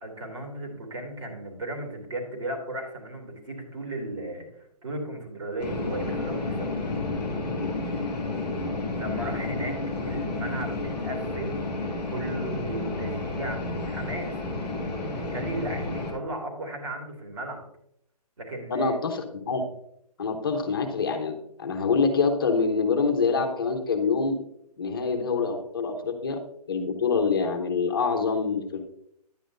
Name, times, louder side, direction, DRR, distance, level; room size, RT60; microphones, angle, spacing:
voice 1, 0.0-6.8 9.0-9.8 10.0-11.6 12.1-17.6 18.4-19.0, right 1 dB, 50° right, 1 dB, 2.9 m, -36 dB
sound 1, 5.6-16.1, left 2 dB, ahead, 0.4 m, -31 dB
voice 2, 18.7-19.6 20.2-24.4 24.8-26.4 26.7-28.8, left 4 dB, 35° left, 5 dB, 0.9 m, -26 dB
10.5 x 8.4 x 2.6 m, 0.72 s
hypercardioid pair, 175°, 20 cm